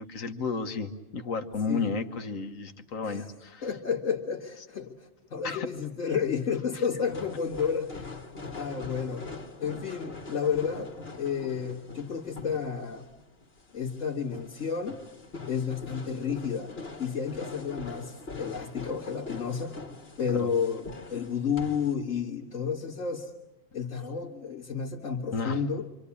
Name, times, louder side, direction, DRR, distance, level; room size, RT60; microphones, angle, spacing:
voice 1, 0.0-3.7 5.4-5.7 20.4-20.5 25.3-25.6, left 4 dB, 90° left, 6 dB, 1.7 m, -32 dB
voice 2, 3.6-8.2 8.4-9.3 9.6-13.1 13.7-15.0 15.5-19.8 20.2-23.3 23.7-25.9, left 6 dB, 70° left, -3 dB, 2.2 m, -31 dB
sound 1, 7.0-21.9, left 3 dB, 50° left, 2.3 m, -43 dB
26.5 x 26.5 x 8.5 m, 0.98 s
omnidirectional pair, 1.4 m